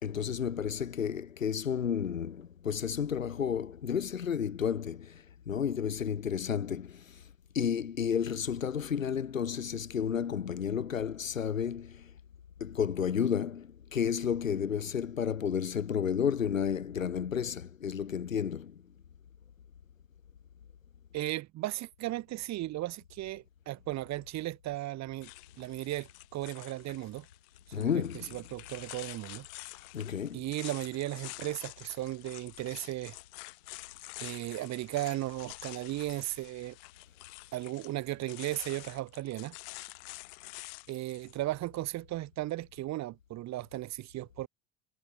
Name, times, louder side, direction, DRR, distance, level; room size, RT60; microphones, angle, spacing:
voice 1, 0.0-7.2 7.5-12.1 12.6-18.8 27.7-28.4 29.9-30.4, left 8 dB, 80° left, 1.8 m, -32 dB
voice 2, 21.1-25.3 25.6-27.3 27.7-29.5 30.3-33.2 34.2-36.8 37.5-39.6 40.9-44.5, right 16 dB, 45° right, 2.1 m, -36 dB
sound 1, 25.2-41.4, left 40 dB or more, 60° left, 4.1 m, -48 dB
figure-of-eight pair, 70°, 39 cm